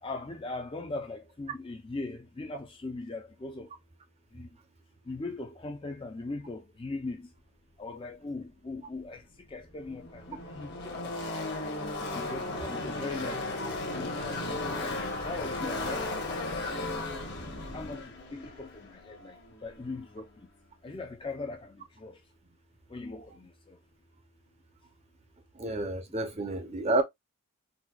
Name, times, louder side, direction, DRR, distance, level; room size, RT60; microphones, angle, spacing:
voice 1, 0.0-3.7 4.3-4.5 5.1-7.3 7.8-9.2 9.5-11.2 12.1-14.2 14.7-17.2 17.7-20.3 20.8-22.2 22.9-23.8, left 3 dB, 25° left, 0.4 m, -40 dB
Car passing by / Race car auto racing, 9.1-9.2 9.4-20.0, left 2 dB, 50° left, 0.9 m, -36 dB
voice 2, 25.5-27.0, right 2 dB, 30° right, 0.5 m, -30 dB
4.1 x 2.2 x 2.2 m
head